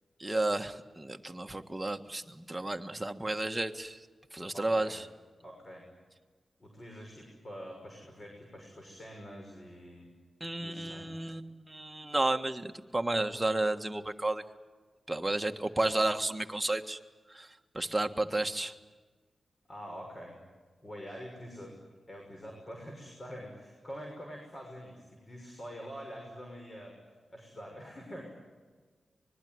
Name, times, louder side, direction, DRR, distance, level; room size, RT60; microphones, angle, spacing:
voice 1, 0.2-4.1 4.3-5.1 10.4-14.4 15.1-17.0 17.3-18.8, right 2 dB, 15° right, 5 dB, 1.5 m, -32 dB
voice 2, 4.5-4.9 5.4-5.9 6.6-10.1 10.6-11.1 19.7-20.4 20.8-21.8 22.1-27.0 27.3-28.3, equal, 35° left, 1 dB, 6.5 m, -45 dB
25.0 x 22.0 x 9.6 m, 1.4 s
wide cardioid pair, 85°, 0 cm